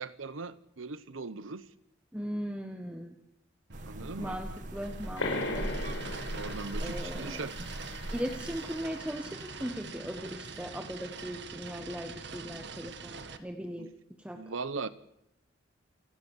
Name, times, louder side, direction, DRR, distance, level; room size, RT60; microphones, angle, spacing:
voice 1, 0.0-1.7 3.9-4.4 6.3-7.6 13.8-13.9 14.3-14.9, right 4 dB, 85° right, 14 dB, 1.0 m, -39 dB
voice 2, 2.1-3.1 4.2-5.7 6.8-7.4 8.1-13.9 14.2-14.4, equal, 5° right, 5 dB, 1.5 m, -38 dB
sound 1, 3.7-9.0, right 1 dB, 40° right, 1.5 m, -40 dB
sound 2, 3.7-13.4, right 5 dB, 60° right, 1.7 m, -44 dB
sound 3, 5.2-10.4, left 2 dB, 90° left, 5.9 m, -39 dB
29.0 x 16.5 x 7.3 m, 0.81 s
head